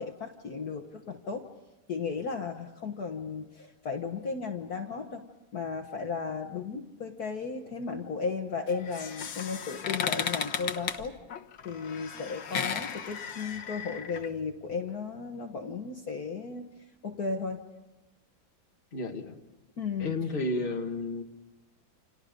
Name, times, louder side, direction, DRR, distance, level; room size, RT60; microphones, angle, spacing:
voice 1, 0.0-1.5 1.9-5.3 5.5-11.2 11.7-16.7 17.0-17.6 19.8-20.1, left 5 dB, 50° left, 3 dB, 1.8 m, -35 dB
sound 1, 8.7-14.3, left 7 dB, 75° left, 2.0 m, -35 dB
voice 2, 18.9-19.4 20.0-21.2, left 2 dB, 25° left, 3 dB, 1.9 m, -32 dB
29.5 x 28.0 x 5.3 m, 1.0 s
omnidirectional pair, 2.2 m